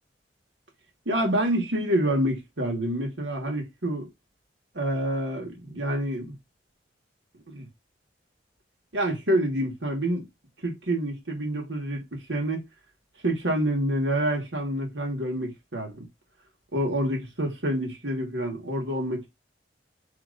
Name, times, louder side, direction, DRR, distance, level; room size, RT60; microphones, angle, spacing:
voice 1, 1.0-4.1 4.7-6.4 7.5-7.7 8.9-10.2 10.6-12.6 13.2-16.0 16.7-19.3, right 1 dB, 80° right, 1.7 m, -27 dB
3.9 x 2.9 x 3.9 m
head